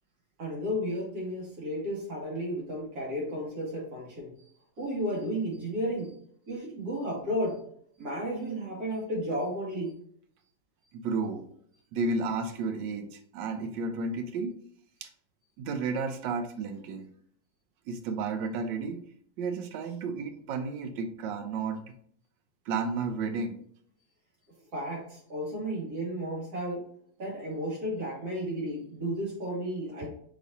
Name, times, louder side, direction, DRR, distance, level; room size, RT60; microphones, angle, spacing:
voice 1, 0.4-4.3 4.8-6.1 6.5-7.6 8.0-9.9 24.7-26.9 27.2-30.1, equal, 55° right, -4 dB, 2.3 m, -33 dB
voice 2, 10.9-11.5 11.9-14.6 15.0-15.1 15.6-17.1 17.9-19.0 19.4-21.9 22.7-23.6, right 4 dB, 85° right, 7 dB, 1.3 m, -32 dB
5.1 x 3.6 x 2.7 m, 0.62 s
omnidirectional pair, 2.0 m